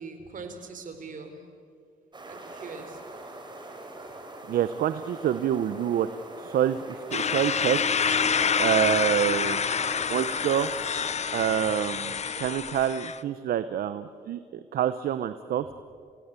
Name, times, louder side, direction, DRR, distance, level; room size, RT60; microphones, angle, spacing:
voice 1, 0.0-1.4 2.2-3.0, right 4 dB, 60° right, 7 dB, 4.2 m, -41 dB
sound 1, 2.1-11.1, right 2 dB, 30° right, 4.9 m, -43 dB
voice 2, 4.5-6.1 6.4-6.8 7.1-7.8 8.6-9.6 10.1-10.7 11.3-14.4 14.7-15.7, right 10 dB, 75° right, 12 dB, 0.9 m, -26 dB
sound 2, 7.1-13.2, left 6 dB, 45° left, 1.0 m, -27 dB
28.5 x 17.5 x 8.4 m, 2.2 s
cardioid pair, 70°, 15 cm